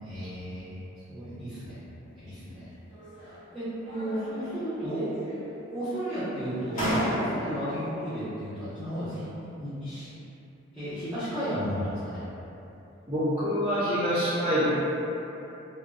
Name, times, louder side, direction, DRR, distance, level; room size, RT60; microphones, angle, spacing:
voice 1, 0.0-0.7 1.1-1.8 2.1-2.7 3.2-5.1 5.7-9.3 9.6-10.1 10.7-12.2, equal, ahead, -21 dB, 1.0 m, -33 dB
sound 1, 2.9-3.5 3.9-4.6 4.9-5.7 6.3-6.4 6.7-7.7, equal, 40° left, 0.9 m, -33 dB
voice 2, 13.1-14.6, equal, 25° right, -17 dB, 0.8 m, -26 dB
3.7 x 2.2 x 2.3 m, 3.0 s
head